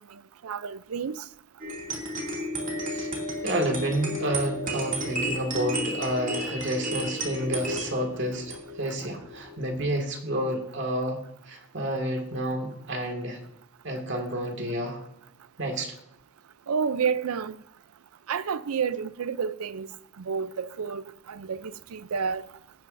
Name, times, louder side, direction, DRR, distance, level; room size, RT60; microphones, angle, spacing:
voice 1, 0.4-1.2 16.7-17.6 18.3-19.9 20.2-21.0 21.3-22.5, right 6 dB, 90° right, 0.5 m, -30 dB
sound 1, 1.6-9.9, equal, 40° right, 2.5 m, -33 dB
voice 2, 3.4-13.4 13.8-15.0 15.6-16.0, right 1 dB, 55° right, 2.0 m, -30 dB
16.5 x 9.4 x 2.6 m
head